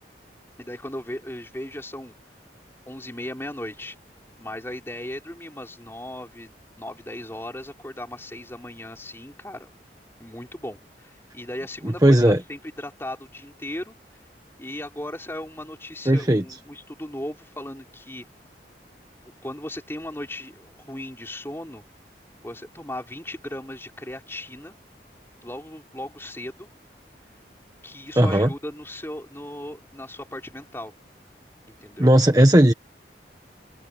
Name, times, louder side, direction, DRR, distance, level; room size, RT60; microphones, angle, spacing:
voice 1, 0.6-2.1 2.9-4.0 4.4-9.7 10.2-13.9 14.6-18.2 19.2-21.8 22.4-24.7 25.4-26.7 27.8-30.9 31.7-32.1, left 1 dB, 15° left, 4.8 m, -37 dB
voice 2, 12.0-12.4 16.1-16.4 28.2-28.5 32.0-32.7, right 1 dB, 20° right, 1.2 m, -16 dB
open air
head